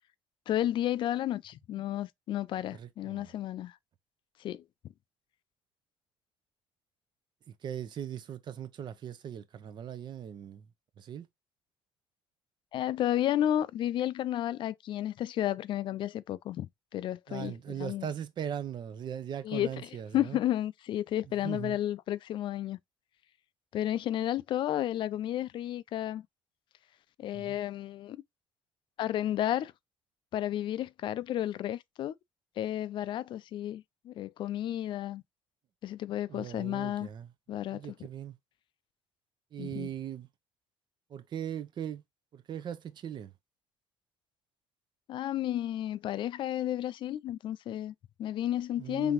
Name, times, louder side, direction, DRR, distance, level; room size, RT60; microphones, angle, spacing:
voice 1, 0.5-3.8 4.4-4.6 12.7-18.1 19.4-22.8 23.7-26.3 27.2-28.2 29.0-29.7 30.3-32.2 32.6-35.2 35.8-37.1 37.5-37.8 39.6-39.9 45.1-49.1, left 12 dB, 60° left, 0.4 m, -32 dB
voice 2, 2.7-3.3 7.5-10.7 11.0-11.3 17.3-20.4 21.4-21.8 27.3-27.6 36.3-37.3 37.7-38.4 39.5-40.3 41.1-42.0 42.3-43.3 48.8-49.1, right 9 dB, 55° right, 0.7 m, -39 dB
3.9 x 3.4 x 2.9 m
supercardioid pair, 85°, 9 cm